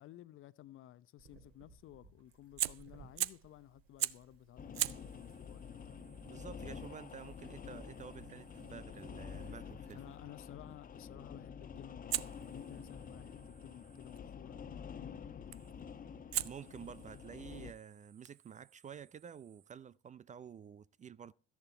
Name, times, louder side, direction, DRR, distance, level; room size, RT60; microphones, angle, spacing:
voice 1, 0.0-6.0 9.9-16.0, left 13 dB, 45° left, 0.7 m, -55 dB
sound 1, 1.2-10.2, right 4 dB, 50° right, 3.4 m, -63 dB
Fire, 2.6-3.5 4.0-4.3 4.7-9.7 12.1-14.2 15.5-15.8 16.3-19.8, right 13 dB, 90° right, 0.5 m, -43 dB
sound 2, 4.6-17.7, left 6 dB, 30° left, 1.1 m, -49 dB
voice 2, 6.2-10.0 16.4-21.3, right 7 dB, 25° right, 0.5 m, -50 dB
13.5 x 10.5 x 4.4 m
hypercardioid pair, 65°, 29 cm